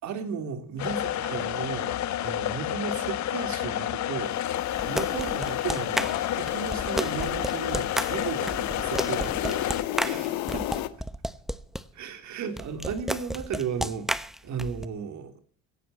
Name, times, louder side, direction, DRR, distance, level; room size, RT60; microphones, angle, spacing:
voice 1, 0.0-10.8 12.0-14.1 14.4-15.3, right 6 dB, 60° right, 8 dB, 3.4 m, -35 dB
sound 1, 0.8-9.8, left 12 dB, 55° left, 1.4 m, -30 dB
sound 2, 4.2-10.9, left 15 dB, 90° left, 1.5 m, -35 dB
sound 3, 4.7-11.8 12.6-14.8, equal, ahead, 0.9 m, -32 dB
17.5 x 15.0 x 4.2 m, 0.43 s
cardioid pair, 115°, 33 cm